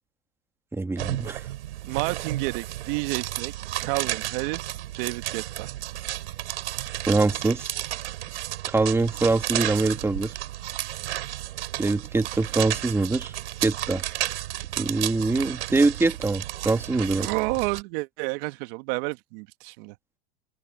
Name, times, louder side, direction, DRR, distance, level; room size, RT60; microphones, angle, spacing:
voice 1, 0.7-1.4 7.1-7.8 8.7-10.4 11.8-13.3 13.6-14.0 14.8-17.3, right 3 dB, 5° right, 1.7 m, -24 dB
sound 1, 1.0-17.8, right 14 dB, 75° right, 3.9 m, -32 dB
voice 2, 1.8-3.5 3.8-5.7 17.1-20.0, right 25 dB, 55° right, 1.8 m, -30 dB
hypercardioid pair, 120°, 34 cm